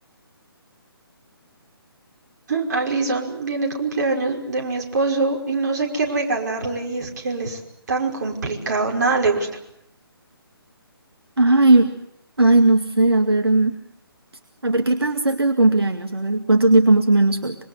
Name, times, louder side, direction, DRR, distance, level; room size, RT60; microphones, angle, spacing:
voice 1, 2.5-7.6 7.9-9.5, right 3 dB, 45° right, 0 dB, 5.4 m, -23 dB
voice 2, 11.4-11.9 12.4-13.7 14.6-17.6, right 2 dB, 75° right, 6 dB, 2.1 m, -17 dB
26.0 x 24.0 x 8.1 m, 0.73 s
figure-of-eight pair, 140°, 13 cm